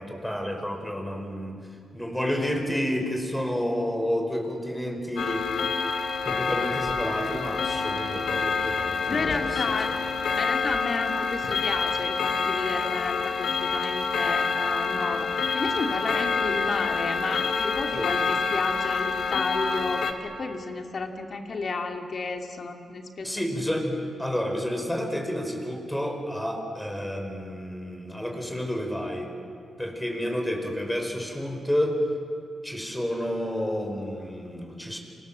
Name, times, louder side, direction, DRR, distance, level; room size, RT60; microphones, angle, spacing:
voice 1, 0.0-1.6 1.9-5.5 6.2-9.9 17.9-18.1 23.2-29.3 29.8-32.0 32.6-35.0, equal, 5° left, 3 dB, 5.1 m, -30 dB
Clock, 5.2-20.1, left 5 dB, 70° left, 2.0 m, -27 dB
voice 2, 9.0-10.0 10.4-23.5, left 3 dB, 50° left, 4 dB, 2.6 m, -32 dB
29.0 x 26.0 x 7.5 m, 2.4 s
cardioid pair, 90°, 0 cm